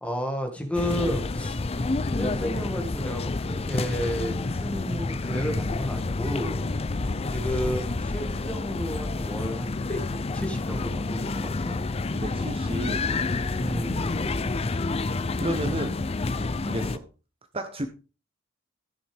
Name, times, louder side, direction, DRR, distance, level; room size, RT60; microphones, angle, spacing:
voice 1, 0.0-1.6 2.0-11.8 13.5-14.2, equal, 5° left, 5 dB, 1.9 m, -32 dB
sound 1, 0.7-17.0, left 3 dB, 30° left, 0.5 m, -29 dB
voice 2, 6.7-7.2 12.1-13.1 13.7-14.5 15.4-16.0 16.6-17.1 17.5-17.9, right 1 dB, 30° right, 7 dB, 0.9 m, -33 dB
14.5 x 7.0 x 3.5 m, 0.33 s
head